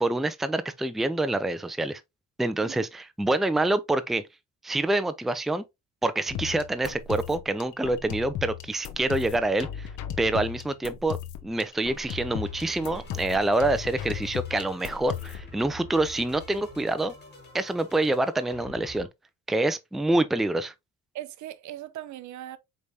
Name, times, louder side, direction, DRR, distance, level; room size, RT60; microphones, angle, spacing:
voice 1, 0.0-2.0 2.4-4.2 4.6-5.6 6.0-9.9 10.2-11.2 11.4-17.1 17.5-19.1 19.5-20.7, right 2 dB, ahead, 0.4 m, -26 dB
sound 1, 6.3-15.5, left 10 dB, 85° left, 0.7 m, -36 dB
sound 2, 11.9-19.1, left 2 dB, 35° left, 1.8 m, -47 dB
voice 2, 21.1-22.6, right 13 dB, 70° right, 0.6 m, -39 dB
4.9 x 3.3 x 2.7 m
cardioid pair, 90°, 30 cm